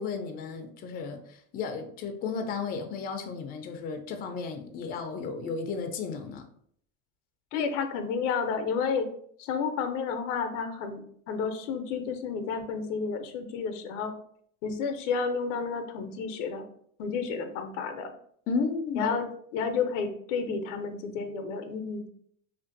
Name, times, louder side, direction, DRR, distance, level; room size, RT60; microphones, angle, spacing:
voice 1, 0.0-6.4 18.5-19.2, left 5 dB, 25° left, 0.3 m, -33 dB
voice 2, 7.5-9.1 9.4-14.1 14.6-16.6 17.0-18.1 18.9-19.2 19.5-22.1, left 5 dB, 85° left, 0.5 m, -31 dB
2.5 x 2.5 x 2.5 m
supercardioid pair, 105°, 36 cm